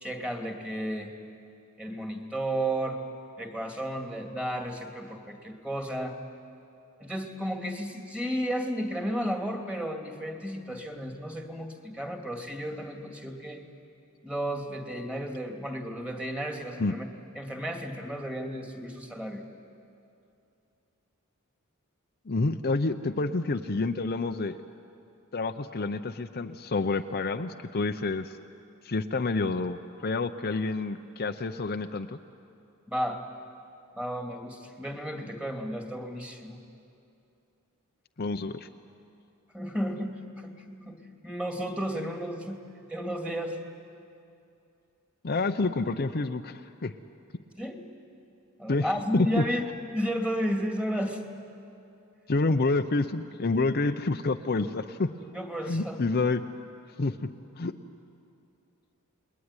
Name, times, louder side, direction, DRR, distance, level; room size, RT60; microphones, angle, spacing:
voice 1, 0.0-1.1 1.8-3.0 3.4-6.2 7.0-13.6 14.2-17.1 17.4-19.5 32.9-33.2 34.0-36.6 39.5-41.0 41.2-42.6 42.9-43.6 47.6-47.8 48.6-49.6 49.9-51.2 52.5-52.6 55.3-56.0, equal, 5° right, 3 dB, 2.4 m, -33 dB
voice 2, 22.3-24.6 25.3-28.3 28.8-32.2 38.2-38.7 45.2-46.9 48.7-48.9 49.1-49.4 52.3-55.1 55.7-56.4 57.0-57.1 57.6-57.7, left 3 dB, 45° left, 7 dB, 0.7 m, -28 dB
29.0 x 21.0 x 9.8 m, 2.6 s
head